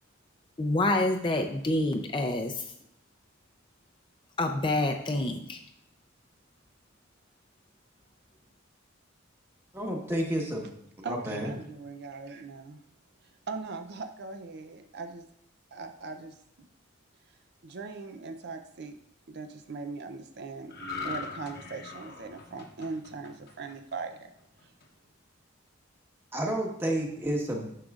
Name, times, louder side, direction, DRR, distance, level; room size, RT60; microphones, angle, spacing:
voice 1, 0.6-2.7 4.4-5.6, left 2 dB, 25° left, 4 dB, 0.5 m, -27 dB
voice 2, 9.7-10.7 11.0-11.5 26.3-27.7, right 1 dB, 10° right, 0 dB, 1.2 m, -30 dB
voice 3, 11.0-12.8 13.2-15.3 15.7-16.7 17.3-17.4 17.6-19.0 19.3-20.7 21.0-24.3 24.6-24.7, right 4 dB, 55° right, 7 dB, 0.5 m, -40 dB
sound 1, 20.7-24.2 24.6-24.8, left 4 dB, 50° left, 0.9 m, -41 dB
9.9 x 6.4 x 2.4 m, 0.77 s
head